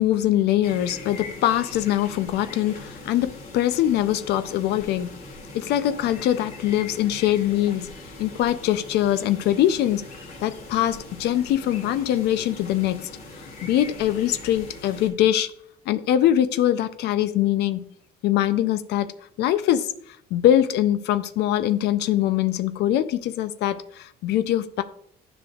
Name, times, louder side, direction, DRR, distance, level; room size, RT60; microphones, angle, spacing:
voice 1, 0.0-5.1 5.5-7.9 8.2-10.1 10.4-13.1 13.6-15.5 15.9-17.8 18.2-19.1 19.4-24.8, left 12 dB, 80° left, 0.5 m, -23 dB
sound 1, 0.6-15.1, left 2 dB, 55° left, 2.5 m, -41 dB
9.5 x 5.3 x 2.4 m
cardioid pair, 110°, 17 cm